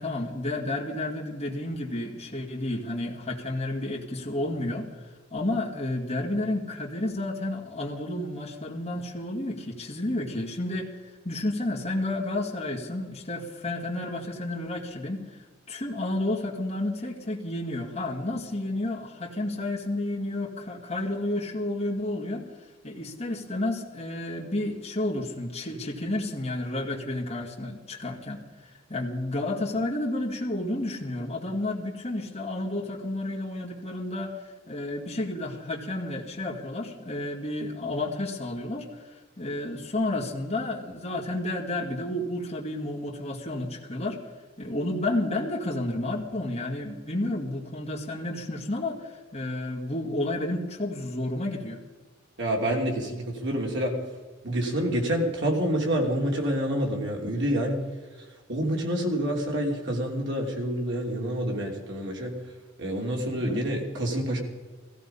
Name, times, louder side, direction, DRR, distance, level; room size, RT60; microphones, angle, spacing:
voice 1, 0.0-22.4 22.8-44.2 44.6-51.8 63.1-63.6, left 1 dB, 30° left, -2 dB, 2.1 m, -31 dB
voice 2, 52.4-53.9 54.4-57.8 58.5-62.3 62.8-64.4, equal, 60° right, 0 dB, 3.1 m, -27 dB
16.0 x 15.5 x 5.6 m, 1.3 s
head